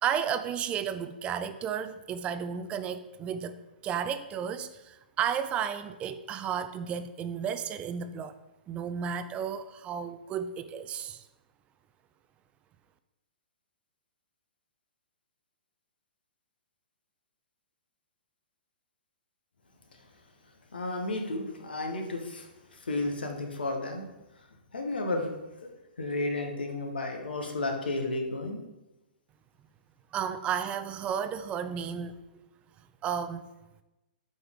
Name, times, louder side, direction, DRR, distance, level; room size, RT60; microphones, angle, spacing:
voice 1, 0.0-8.4 8.7-11.2 30.1-32.2 33.0-33.5, right 8 dB, 20° right, 11 dB, 0.3 m, -33 dB
voice 2, 20.7-24.0 24.7-25.3 25.6-25.7 26.0-28.6, left 2 dB, 75° left, 4 dB, 1.3 m, -32 dB
7.9 x 4.6 x 3.7 m, 1.0 s
figure-of-eight pair, 115°, 5 cm